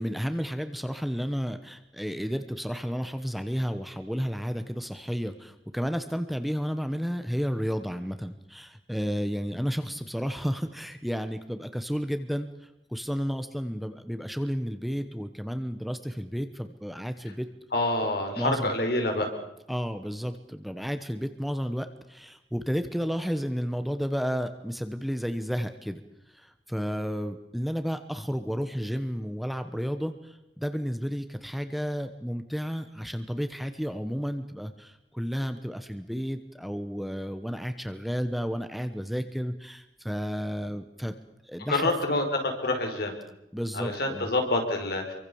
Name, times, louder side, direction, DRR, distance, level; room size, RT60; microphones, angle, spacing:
voice 1, 0.0-17.5 18.4-18.7 19.7-26.0 26.3-41.1 41.4-41.9 43.5-44.3, equal, ahead, 8 dB, 1.1 m, -32 dB
voice 2, 17.7-19.3 41.7-43.2 43.7-45.1, left 2 dB, 60° left, 3 dB, 5.3 m, -27 dB
27.0 x 24.0 x 7.2 m, 0.87 s
head